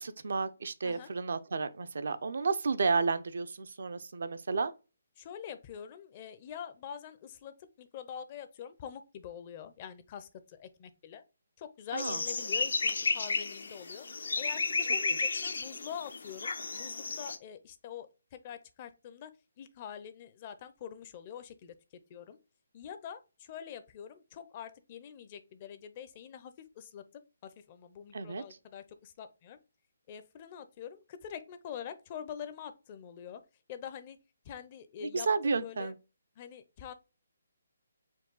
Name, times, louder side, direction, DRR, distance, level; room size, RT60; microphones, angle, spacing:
voice 1, 0.0-4.7 11.9-12.2 15.1-15.2 28.1-28.4 35.0-36.0, right 4 dB, 70° right, 0.5 m, -32 dB
voice 2, 5.2-11.2 11.6-14.1 14.4-19.3 19.6-21.7 22.1-22.4 22.7-27.0 27.4-29.6 30.1-33.4 33.7-34.2 34.4-35.9 36.4-36.9, left 8 dB, 35° left, 0.5 m, -45 dB
sound 1, 12.0-17.4, left 4 dB, 75° left, 0.6 m, -33 dB
4.5 x 2.3 x 3.8 m
hypercardioid pair, 155°, 0 cm